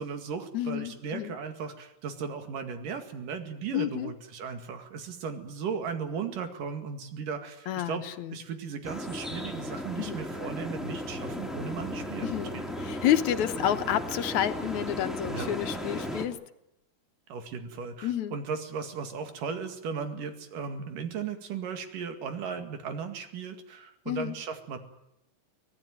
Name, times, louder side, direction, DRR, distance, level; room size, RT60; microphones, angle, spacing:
voice 1, 0.0-8.1 8.3-12.7 13.5-13.6 15.3-15.5 17.3-24.8, right 6 dB, 90° right, 7 dB, 3.8 m, -36 dB
voice 2, 0.5-1.4 3.7-4.1 7.7-8.4 10.0-10.2 12.2-12.5 12.8-16.4 18.0-18.4 24.1-24.4, left 11 dB, 70° left, 10 dB, 2.3 m, -29 dB
sound 1, 8.8-16.3, left 1 dB, ahead, 2.0 m, -36 dB
24.5 x 18.0 x 9.4 m, 0.82 s
omnidirectional pair, 3.7 m